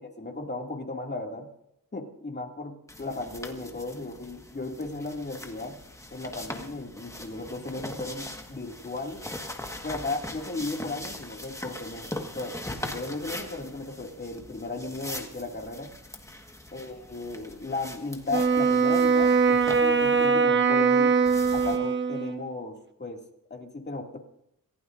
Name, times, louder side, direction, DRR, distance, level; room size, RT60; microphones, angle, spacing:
voice 1, 0.0-1.5 1.9-5.8 6.1-9.2 9.8-15.9 16.7-21.2 21.5-23.2 23.5-24.2, left 2 dB, 30° left, 1 dB, 2.5 m, -35 dB
sound 1, 2.9-20.3 21.3-21.8, left 1 dB, 10° left, 1.6 m, -41 dB
Wind instrument woodwind instrument, 18.3-22.5, right 5 dB, 30° right, 1.2 m, -22 dB
27.5 x 16.0 x 2.6 m, 0.79 s
wide cardioid pair, 95°, 36 cm